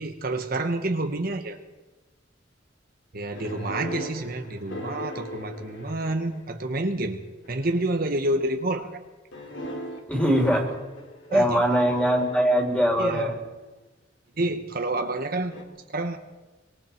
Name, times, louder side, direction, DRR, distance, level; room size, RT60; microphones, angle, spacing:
voice 1, 0.0-1.6 3.1-7.2 7.5-9.0 11.3-11.6 13.0-13.4 14.4-15.6 15.9-16.2, right 2 dB, 50° right, 5 dB, 1.2 m, -28 dB
sound 1, 3.3-6.7 7.4-7.9 9.3-13.4 15.5-15.6, equal, 80° left, 3.4 m, -39 dB
voice 2, 10.1-10.7 11.3-13.3, equal, 5° left, 1 dB, 3.8 m, -22 dB
24.5 x 23.5 x 4.6 m, 1.1 s
head